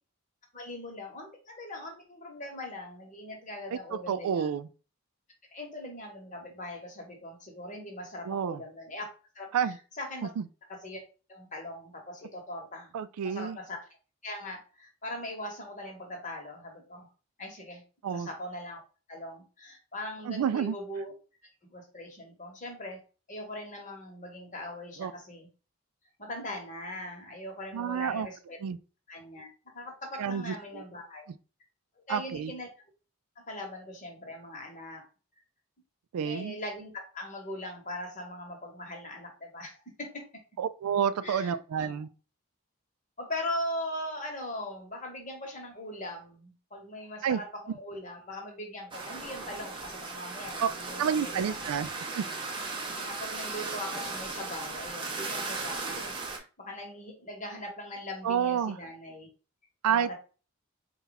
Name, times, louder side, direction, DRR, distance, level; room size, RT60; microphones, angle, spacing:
voice 1, 0.5-4.5 5.5-9.1 9.3-10.3 10.7-11.0 11.3-12.9 13.2-13.9 14.2-17.1 17.4-17.8 18.1-18.8 19.1-21.1 21.7-23.0 23.3-25.5 26.2-28.6 29.1-31.3 32.0-32.7 33.4-35.0 36.2-40.3 41.2-42.0 43.2-51.9 53.0-59.3 59.8-60.2, left 1 dB, 35° left, 1.0 m, -40 dB
voice 2, 3.7-4.7 8.3-8.6 9.5-9.8 10.4-10.5 12.9-13.6 18.0-18.3 20.3-20.7 25.0-25.1 27.7-28.3 28.6-28.8 30.2-30.8 32.1-32.5 36.1-36.6 40.6-42.1 47.2-47.4 50.6-50.7 51.0-51.9 52.1-52.2 58.2-58.8 59.8-60.1, right 8 dB, 85° right, 0.3 m, -29 dB
sound 1, 48.9-56.4, right 3 dB, 20° right, 0.6 m, -37 dB
4.1 x 2.3 x 3.9 m
head